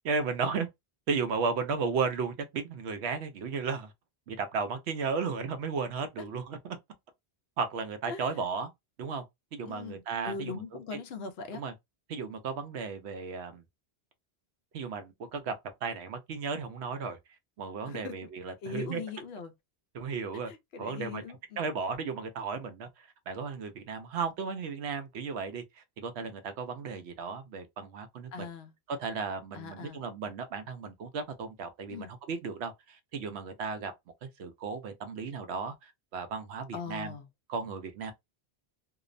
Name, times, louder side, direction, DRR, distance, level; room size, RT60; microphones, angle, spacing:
voice 1, 0.0-0.7 1.1-3.9 4.3-6.8 7.6-8.7 9.0-9.2 9.5-10.6 10.9-11.0 11.5-11.7 12.1-13.6 14.7-15.5 15.8-17.2 17.6-19.0 19.9-20.5 20.8-21.2 21.6-28.5 28.9-33.9 34.2-37.1 37.5-38.1, right 5 dB, 80° right, 0.9 m, -34 dB
voice 2, 9.7-11.6 17.9-18.3 18.6-19.5 20.5-21.7 28.3-28.7 29.5-30.0 31.9-32.1 36.7-37.3, left 5 dB, 75° left, 0.8 m, -40 dB
2.8 x 2.0 x 2.5 m
omnidirectional pair, 1.1 m